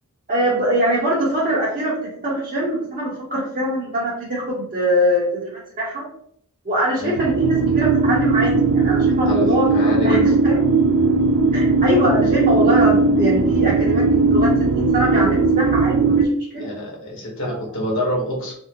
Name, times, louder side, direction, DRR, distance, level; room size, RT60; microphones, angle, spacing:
voice 1, 0.3-5.5 5.8-6.0 6.6-9.7 10.0-10.6 11.5-16.3 16.5-16.7 17.5-17.6, equal, 40° right, -7 dB, 0.8 m, -22 dB
sound 1, 7.2-16.2, right 3 dB, 70° right, 0.4 m, -18 dB
voice 2, 9.3-10.3 16.6-18.5, left 1 dB, 60° left, -2 dB, 1.1 m, -26 dB
3.0 x 2.7 x 2.8 m, 0.67 s
head